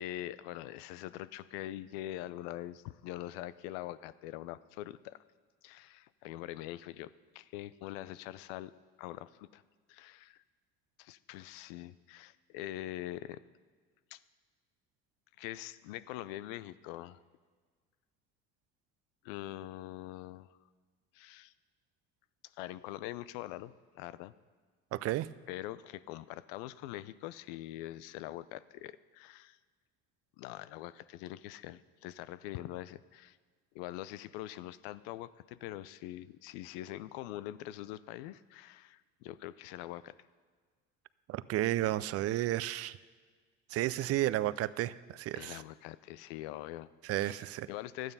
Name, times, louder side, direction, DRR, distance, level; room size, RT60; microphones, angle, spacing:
voice 1, 0.0-5.2 5.6-8.7 9.0-9.6 9.9-10.4 11.0-13.4 14.1-14.2 15.4-17.2 19.2-20.6 21.1-21.5 22.6-24.3 25.5-29.6 30.4-33.4 33.7-40.2 42.3-42.5 45.3-46.9 47.2-48.1, left 14 dB, 85° left, 17 dB, 0.5 m, -43 dB
voice 2, 24.9-25.3 41.3-43.0 43.7-45.6 47.1-47.7, right 15 dB, 55° right, 18 dB, 0.5 m, -32 dB
12.0 x 9.3 x 5.5 m, 1.5 s
supercardioid pair, 90°, 29 cm